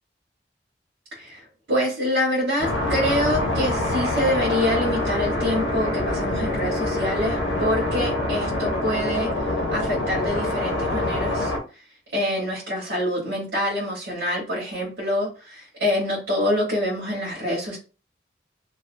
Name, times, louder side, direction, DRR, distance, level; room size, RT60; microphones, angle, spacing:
voice 1, 1.7-9.3 9.7-11.5 12.1-17.8, left 1 dB, 75° right, -6 dB, 1.0 m, -26 dB
sound 1, 2.6-11.6, left 1 dB, 85° left, 0.6 m, -25 dB
2.3 x 2.3 x 2.5 m, 0.33 s
head